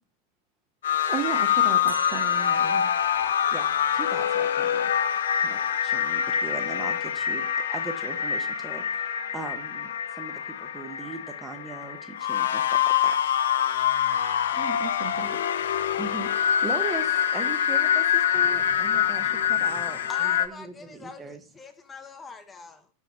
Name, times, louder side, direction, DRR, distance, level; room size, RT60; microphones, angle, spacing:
sound 1, 0.8-20.5, left 9 dB, 60° left, 0.4 m, -25 dB
voice 1, 0.9-2.9 14.5-15.3, right 10 dB, 35° right, 0.5 m, -35 dB
Musical instrument, 1.9-9.2, left 1 dB, 85° right, 0.5 m, -42 dB
voice 2, 3.5-4.9 5.4-13.2 16.0-21.4, right 3 dB, 15° right, 0.9 m, -39 dB
voice 3, 18.3-22.9, left 4 dB, 20° left, 0.6 m, -44 dB
6.1 x 5.3 x 2.9 m
figure-of-eight pair, 90°, 0 cm